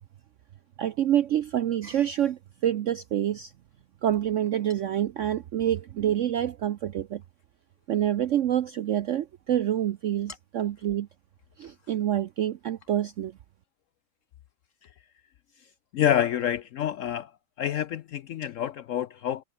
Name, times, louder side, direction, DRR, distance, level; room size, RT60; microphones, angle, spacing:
voice 1, 0.8-3.5 4.0-7.2 7.9-11.1 11.6-13.3, right 11 dB, 75° right, 0.6 m, -27 dB
voice 2, 15.9-17.3 17.6-19.4, left 10 dB, 85° left, 0.6 m, -27 dB
omnidirectional pair, 2.0 m